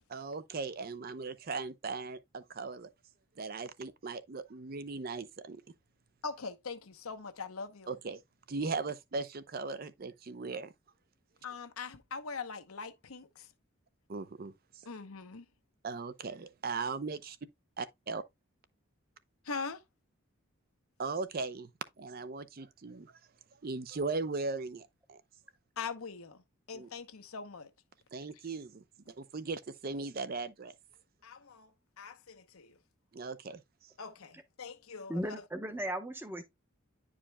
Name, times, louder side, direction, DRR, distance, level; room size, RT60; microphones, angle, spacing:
voice 1, 0.1-2.9 3.4-5.6 7.9-8.2 8.5-10.7 14.1-14.5 15.8-17.4 17.8-18.2 21.0-21.7 22.0-23.1 23.6-25.2 26.7-26.9 28.1-30.7 33.1-33.9, right 4 dB, 45° right, 0.5 m, -38 dB
voice 2, 6.2-7.9 11.4-13.5 14.9-15.5 19.4-19.8 25.8-27.7 31.2-32.8 34.0-35.4, left 5 dB, 90° left, 0.9 m, -42 dB
voice 3, 35.1-36.4, equal, 10° right, 0.7 m, -36 dB
9.9 x 4.9 x 2.2 m
head